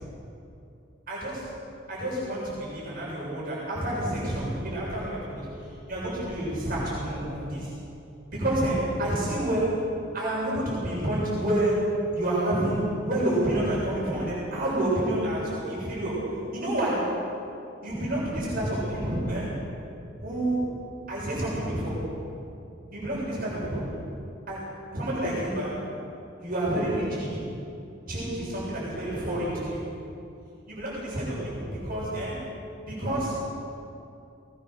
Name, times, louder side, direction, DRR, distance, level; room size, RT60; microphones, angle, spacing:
voice 1, 1.1-1.5 1.9-7.7 8.3-9.9 10.1-17.1 17.8-19.6 20.2-20.8 21.1-22.1 22.9-23.9 24.5-25.9 26.4-27.4 28.1-29.9 30.7-32.4 32.8-33.4, right 1 dB, 50° right, -6 dB, 7.2 m, -29 dB
21.5 x 20.0 x 6.7 m, 2.7 s
head